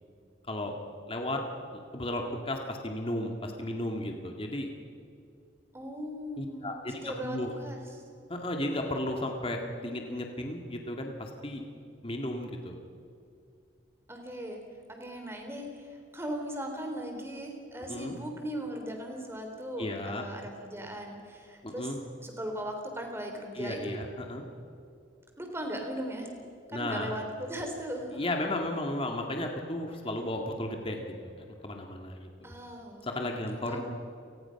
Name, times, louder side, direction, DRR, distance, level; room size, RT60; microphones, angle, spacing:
voice 1, 1.1-1.4 1.7-4.7 6.4-7.5 8.3-11.6 12.0-12.7 17.9-18.2 19.8-20.2 21.6-22.0 23.5-24.4 26.7-27.2 28.1-32.5 33.0-33.8, left 1 dB, 30° left, 2 dB, 2.1 m, -34 dB
voice 2, 5.7-7.8 14.1-14.6 14.9-21.9 22.2-24.0 25.4-26.3 26.7-28.3 32.4-33.1 33.7-33.8, equal, 15° right, 3 dB, 3.5 m, -38 dB
29.5 x 20.0 x 5.9 m, 2.5 s
head